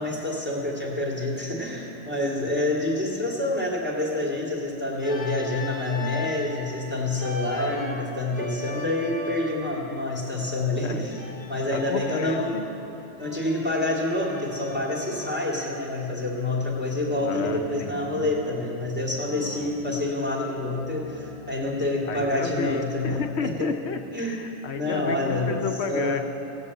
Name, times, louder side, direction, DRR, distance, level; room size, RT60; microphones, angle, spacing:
voice 1, 0.0-11.2 11.5-12.6 13.2-23.7 24.1-24.4 24.7-25.6 25.9-26.2, left 2 dB, 10° right, -4 dB, 2.6 m, -27 dB
Organ, 5.0-6.6 7.2-9.8 11.1-12.8 13.2-15.5 17.0-18.9 19.2-21.9, left 1 dB, 25° right, 1.4 m, -39 dB
voice 2, 10.8-11.2 11.7-12.7 17.2-18.3 22.1-26.2, left 5 dB, 75° left, 7 dB, 1.1 m, -32 dB
16.5 x 8.2 x 8.5 m, 2.8 s
omnidirectional pair, 1.1 m